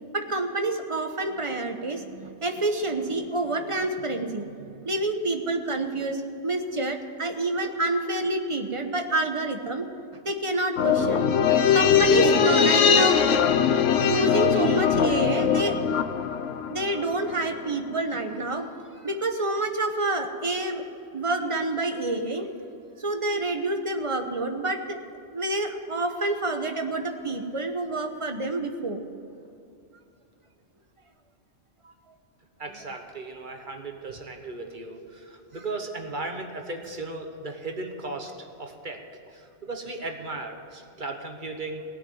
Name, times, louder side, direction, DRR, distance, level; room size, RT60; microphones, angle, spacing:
voice 1, 0.1-4.5 4.8-9.9 10.2-15.8 16.7-18.7 19.0-20.8 21.1-22.5 23.0-25.0 25.3-29.0 31.8-31.9, right 2 dB, 30° right, 6 dB, 1.0 m, -28 dB
sound 1, 10.8-17.4 17.6-17.7, left 7 dB, 85° left, 1.1 m, -21 dB
voice 2, 32.6-39.0 39.3-41.8, right 2 dB, 45° right, 4 dB, 1.3 m, -36 dB
17.5 x 6.3 x 9.5 m, 2.6 s
omnidirectional pair, 1.2 m